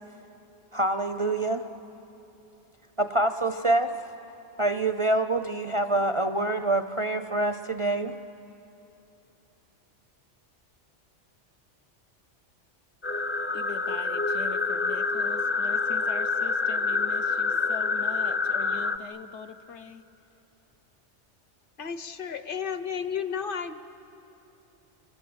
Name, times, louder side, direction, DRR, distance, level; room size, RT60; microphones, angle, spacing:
voice 1, 0.7-1.6 3.0-3.9 4.6-8.2, right 2 dB, 35° right, 9 dB, 0.5 m, -26 dB
sound 1, 13.0-19.0, left 4 dB, 15° left, 0.4 m, -27 dB
voice 2, 13.5-20.0, left 6 dB, 75° left, 9 dB, 1.1 m, -43 dB
voice 3, 21.8-23.7, left 7 dB, 50° left, 11 dB, 1.0 m, -32 dB
29.5 x 24.5 x 7.9 m, 2.9 s
omnidirectional pair, 1.2 m